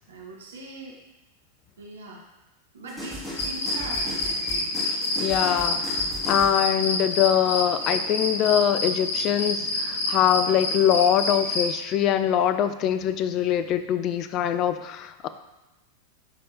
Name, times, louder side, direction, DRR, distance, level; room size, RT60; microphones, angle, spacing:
voice 1, 0.1-1.0 1.8-2.3 2.7-4.7, right 2 dB, 65° right, -2 dB, 1.3 m, -41 dB
sound 1, 2.9-6.6, left 1 dB, 10° left, 1.8 m, -37 dB
sound 2, 3.4-11.7, left 2 dB, 65° left, 1.0 m, -28 dB
voice 2, 5.2-15.3, left 10 dB, 35° left, 11 dB, 0.4 m, -23 dB
10.5 x 3.5 x 2.8 m, 1.0 s
figure-of-eight pair, 90°, 0 cm